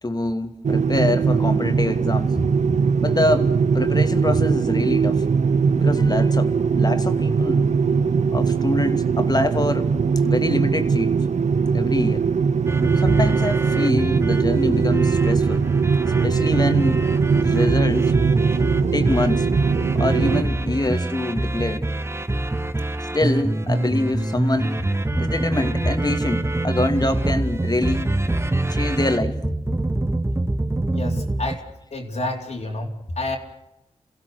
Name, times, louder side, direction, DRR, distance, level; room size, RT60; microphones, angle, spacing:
voice 1, 0.0-2.3 3.0-5.2 5.8-7.7 8.3-9.9 10.2-11.1 11.7-12.3 13.0-15.7 16.0-17.0 17.3-18.1 18.9-19.5 19.9-21.9 23.1-24.8 25.2-28.0 28.7-29.4, left 2 dB, 35° left, 7 dB, 2.6 m, -25 dB
sound 1, 0.6-20.4, right 5 dB, 70° right, 0.7 m, -20 dB
sound 2, 12.7-31.6, right 2 dB, 20° right, 1.2 m, -25 dB
voice 2, 30.9-33.4, left 2 dB, 65° left, 0 dB, 4.0 m, -30 dB
28.5 x 16.0 x 6.4 m, 0.82 s
cardioid pair, 50°, 12 cm